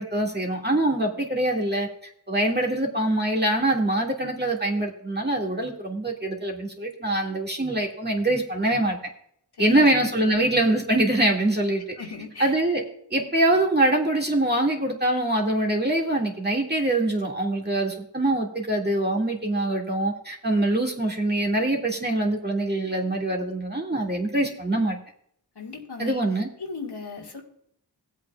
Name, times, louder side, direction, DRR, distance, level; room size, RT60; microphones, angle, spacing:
voice 1, 0.0-1.9 2.3-9.0 9.6-11.8 12.4-12.8 13.1-25.0 26.0-26.5, right 1 dB, 25° right, 0 dB, 1.9 m, -24 dB
voice 2, 9.5-9.9 10.1-10.4 12.0-12.6 25.6-26.2 26.6-27.4, left 4 dB, 70° left, 0 dB, 1.9 m, -37 dB
17.5 x 8.3 x 2.3 m, 0.67 s
wide cardioid pair, 60°, 42 cm